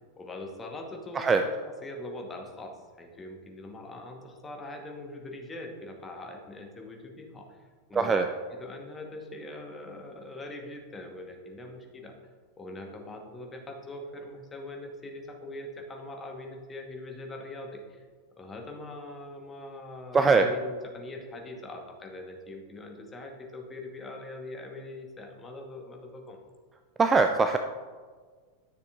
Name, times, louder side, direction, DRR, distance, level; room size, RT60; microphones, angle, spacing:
voice 1, 0.2-1.5 1.8-7.5 7.9-8.3 8.6-12.1 12.6-18.1 18.4-26.4, left 2 dB, 15° left, 2 dB, 1.1 m, -42 dB
voice 2, 7.9-8.3 20.1-20.5 27.0-27.6, right 4 dB, 20° right, 7 dB, 0.3 m, -21 dB
10.0 x 6.7 x 2.4 m, 1.5 s
figure-of-eight pair, 90°, 0 cm